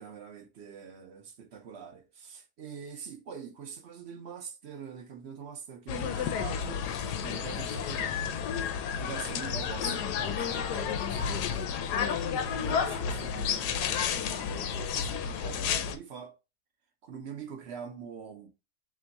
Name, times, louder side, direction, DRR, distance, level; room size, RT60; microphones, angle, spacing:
voice 1, 0.0-8.2 9.0-11.6 12.3-16.3 17.1-18.5, right 6 dB, 55° right, 0.8 m, -44 dB
sound 1, 5.9-16.0, left 7 dB, 90° left, 1.2 m, -31 dB
3.4 x 3.0 x 4.0 m
omnidirectional pair, 1.7 m